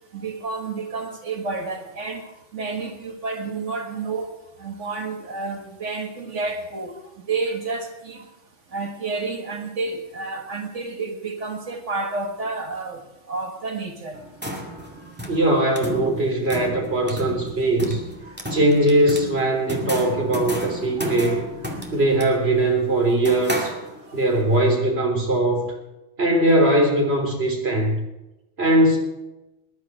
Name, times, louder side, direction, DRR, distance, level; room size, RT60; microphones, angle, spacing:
voice 1, 0.1-4.3 4.6-6.9 7.3-8.3 8.7-13.0 13.3-14.2 18.2-18.4 21.0-21.2 23.1-23.2 24.1-24.2, right 3 dB, 80° right, 1.9 m, -30 dB
sound 1, 14.1-24.3, equal, 10° right, 2.2 m, -33 dB
voice 2, 15.3-18.0 18.5-21.5 21.9-23.8 24.1-25.7 26.2-28.1 28.6-29.0, right 1 dB, 55° right, 3.9 m, -20 dB
19.5 x 11.0 x 4.8 m
omnidirectional pair, 1.2 m